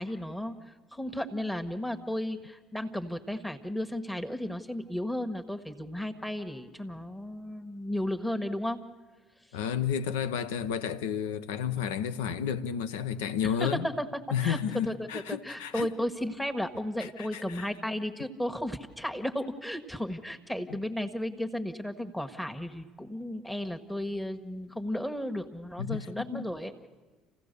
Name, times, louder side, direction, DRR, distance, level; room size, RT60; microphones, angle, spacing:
voice 1, 0.0-8.8 13.4-14.0 14.4-14.6 14.8-26.9, left 1 dB, 5° left, 1.5 m, -34 dB
voice 2, 9.5-13.9 14.3-15.9 17.2-17.7 25.8-26.1 26.3-26.5, left 8 dB, 80° left, 0.8 m, -31 dB
28.0 x 16.0 x 6.8 m
hypercardioid pair, 65°, 0 cm